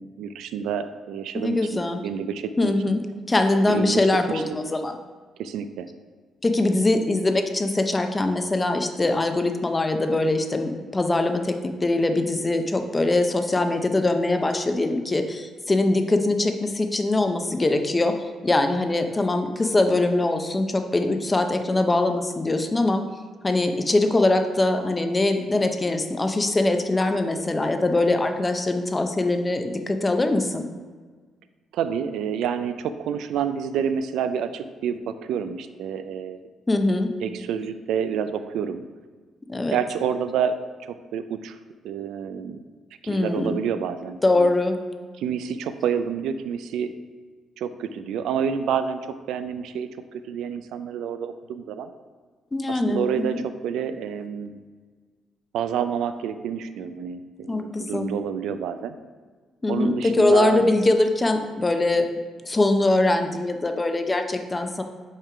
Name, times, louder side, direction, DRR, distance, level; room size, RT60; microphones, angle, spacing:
voice 1, 0.0-2.7 3.7-4.0 4.3-4.4 5.4-5.9 31.7-36.4 37.2-38.8 39.7-40.5 40.8-41.6 41.8-42.6 43.1-44.5 45.2-46.9 47.6-51.9 52.7-54.6 55.5-59.0 59.7-60.6, right 8 dB, 85° right, 10 dB, 0.3 m, -28 dB
voice 2, 1.3-2.0 2.6-3.0 3.3-5.0 6.4-23.0 23.4-30.7 36.7-37.1 39.5-39.8 43.1-43.6 44.2-44.8 52.5-53.3 57.5-58.1 59.6-62.1 62.4-64.8, left 2 dB, 20° left, 6 dB, 0.6 m, -22 dB
5.4 x 3.7 x 4.8 m, 1.5 s
cardioid pair, 90°, 0 cm